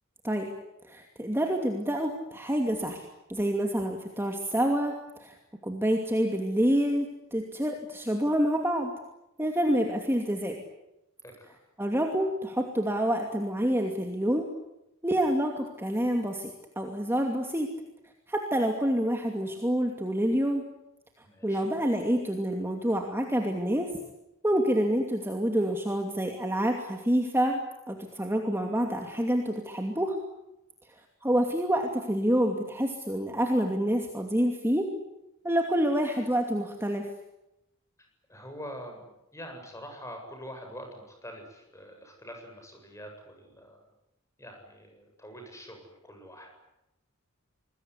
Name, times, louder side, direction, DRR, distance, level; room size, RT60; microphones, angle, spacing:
voice 1, 0.9-4.9 5.2-5.4 5.6-8.9 9.4-10.6 11.8-14.5 15.0-17.7 18.3-20.6 21.4-23.9 24.4-27.6 27.9-30.2 31.2-34.9 35.4-37.1, equal, 10° right, 3 dB, 2.6 m, -27 dB
voice 2, 11.2-11.6 21.2-21.7 38.3-39.1 39.3-43.8 44.4-46.6, equal, 15° left, 4 dB, 7.9 m, -45 dB
27.0 x 21.5 x 9.9 m, 0.89 s
head